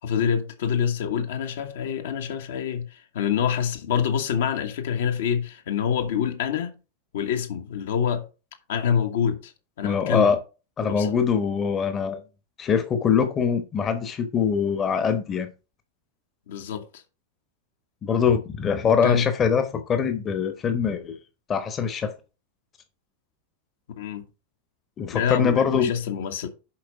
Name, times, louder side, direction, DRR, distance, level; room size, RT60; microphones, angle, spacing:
voice 1, 0.0-6.7 7.1-8.2 8.7-9.5 9.8-10.3 10.9-11.1 16.5-17.0 19.0-19.3 24.0-24.2 25.1-26.5, left 8 dB, 60° left, 1.3 m, -26 dB
voice 2, 9.8-10.4 10.8-12.2 12.6-15.5 18.0-21.2 21.5-22.1 25.0-25.9, left 6 dB, 25° left, 1.1 m, -23 dB
7.4 x 5.2 x 4.8 m
figure-of-eight pair, 90°, 0 cm